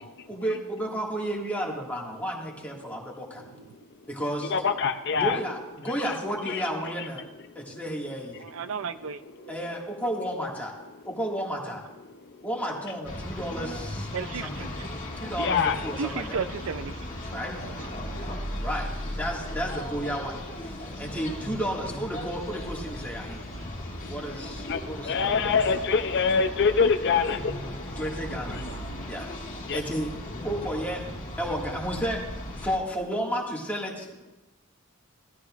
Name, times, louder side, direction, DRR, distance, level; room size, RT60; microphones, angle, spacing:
voice 1, 0.0-3.4 4.1-4.5 5.1-7.2 7.6-8.4 9.5-10.7 11.0-11.8 12.4-14.1 14.3-14.6 15.2-15.6 15.8-16.4 17.3-17.5 18.6-18.9 19.2-23.4 24.1-25.4 28.0-28.6 29.1-29.3 29.7-30.1 30.4-31.0 31.4-32.2 32.6-34.1, equal, 10° left, -2 dB, 2.0 m, -32 dB
voice 2, 4.5-5.4 5.8-6.2 6.5-6.7 7.0-7.1 7.6-7.8 9.4-9.5 12.1-12.5 14.8-15.8 17.3-17.4 18.1-18.7 20.8-21.0 23.4-24.2 24.7-27.8 28.8-29.1 29.6-29.8, left 5 dB, 55° left, 8 dB, 0.6 m, -27 dB
voice 3, 8.4-9.2 9.5-9.6 14.1-14.9 16.0-17.3 17.6-17.9 28.7-28.8, right 5 dB, 70° right, 12 dB, 0.5 m, -35 dB
sound 1, 13.0-32.8, left 1 dB, 40° left, 2.0 m, -37 dB
sound 2, 27.3-28.7, equal, 85° left, 1.7 m, -42 dB
17.0 x 13.0 x 2.5 m, 1.0 s
head